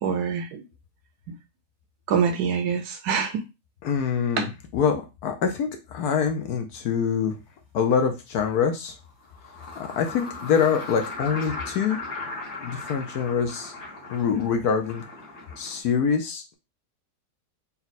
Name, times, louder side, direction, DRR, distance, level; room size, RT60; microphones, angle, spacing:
voice 1, 0.0-0.6 2.1-3.4 4.4-4.5, right 6 dB, 70° right, 6 dB, 1.0 m, -25 dB
voice 2, 3.8-7.3 7.7-8.9 9.8-12.0 12.6-13.7 14.1-15.0 15.6-16.5, left 6 dB, 70° left, 4 dB, 1.1 m, -25 dB
sound 1, 7.5-7.6 9.1-15.8, left 3 dB, 45° left, 1.3 m, -37 dB
4.2 x 2.3 x 4.0 m, 0.26 s
omnidirectional pair, 1.9 m